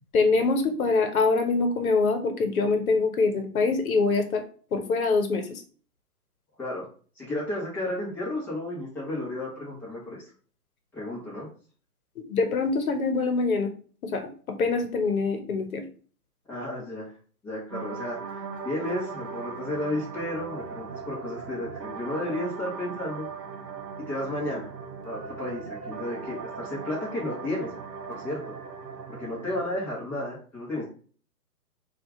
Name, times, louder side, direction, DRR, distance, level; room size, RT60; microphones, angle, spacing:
voice 1, 0.1-4.4 4.7-5.6 12.2-13.7 14.1-15.8, left 4 dB, 60° left, 6 dB, 0.9 m, -24 dB
voice 2, 7.2-10.3 10.9-11.5 16.5-17.1 17.4-23.2 24.1-24.7 25.0-27.7 28.1-28.4 29.1-30.8, left 1 dB, 5° left, -7 dB, 0.7 m, -33 dB
sound 1, 17.7-29.7, right 5 dB, 85° right, 0.8 m, -39 dB
2.7 x 2.4 x 3.5 m, 0.43 s
hypercardioid pair, 135°, 47 cm